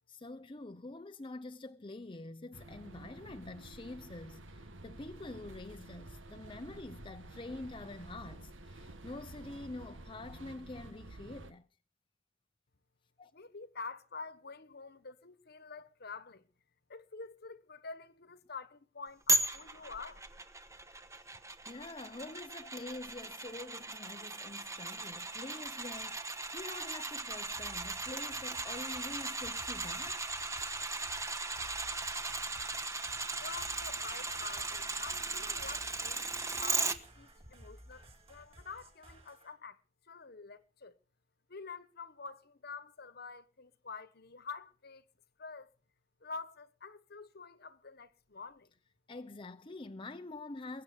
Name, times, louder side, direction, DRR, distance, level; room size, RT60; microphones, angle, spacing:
voice 1, 0.1-11.7 13.2-13.3 21.6-30.3 49.1-50.8, left 2 dB, 25° left, 0.7 m, -46 dB
Central Line Ambience, 2.5-11.5, right 2 dB, 90° right, 1.7 m, -51 dB
voice 2, 13.3-16.5 16.9-20.2 33.4-39.8 40.0-41.0 41.5-45.0 45.4-45.7 46.2-48.7, left 4 dB, 55° left, 1.3 m, -47 dB
sound 1, 19.3-37.0 37.4-37.5, right 3 dB, 15° right, 1.3 m, -37 dB
sound 2, 27.5-39.5, right 1 dB, 30° right, 5.9 m, -57 dB
22.0 x 8.8 x 7.0 m
head